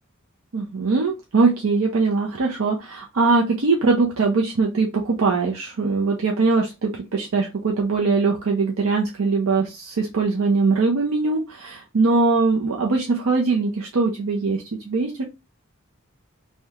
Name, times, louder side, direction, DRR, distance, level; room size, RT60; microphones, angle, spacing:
voice 1, 0.5-15.2, right 4 dB, 90° right, 0 dB, 0.6 m, -21 dB
2.8 x 2.2 x 3.5 m, 0.25 s
head